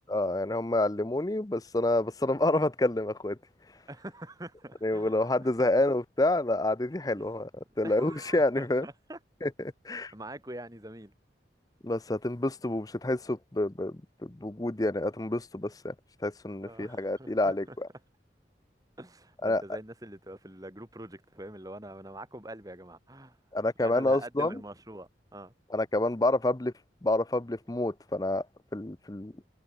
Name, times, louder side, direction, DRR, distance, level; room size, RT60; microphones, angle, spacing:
voice 1, 0.1-3.4 4.8-7.5 7.8-8.9 9.4-9.5 9.8-10.1 11.8-15.9 16.2-17.9 19.4-19.6 23.5-24.6 25.7-26.7 27.0-28.5 28.7-29.3, left 2 dB, 20° left, 0.7 m, -28 dB
voice 2, 3.9-5.1 5.6-5.7 7.8-9.2 9.9-11.1 16.6-17.8 19.0-23.4 23.8-25.5, right 1 dB, 20° right, 5.2 m, -44 dB
head